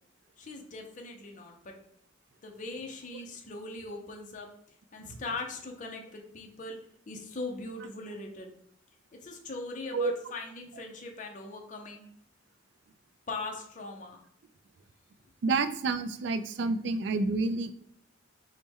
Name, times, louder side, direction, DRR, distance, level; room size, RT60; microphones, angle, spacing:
voice 1, 0.4-1.8 2.4-4.5 4.9-6.8 7.1-8.6 9.2-12.0 13.3-14.2, left 3 dB, 40° left, 2 dB, 0.5 m, -40 dB
voice 2, 15.4-17.7, right 3 dB, 60° right, 11 dB, 0.3 m, -29 dB
3.6 x 2.1 x 4.1 m, 0.70 s
head